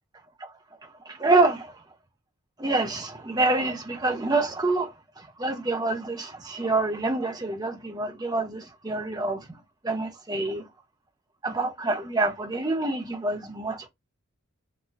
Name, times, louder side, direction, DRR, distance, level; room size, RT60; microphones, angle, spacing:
voice 1, 1.1-1.7 2.6-4.9 5.4-9.4 9.8-10.6 11.4-13.9, right 2 dB, 20° right, 0.7 m, -26 dB
4.0 x 2.7 x 2.5 m
head